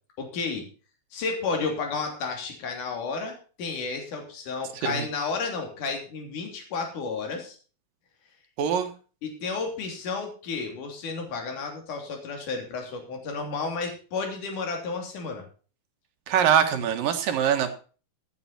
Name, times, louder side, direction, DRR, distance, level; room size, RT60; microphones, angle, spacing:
voice 1, 0.2-0.7 1.1-7.6 9.2-15.4, left 4 dB, 55° left, 2 dB, 4.5 m, -32 dB
voice 2, 8.6-8.9 16.3-17.7, right 8 dB, 65° right, 6 dB, 3.0 m, -23 dB
14.5 x 9.6 x 4.2 m, 0.37 s
omnidirectional pair, 4.5 m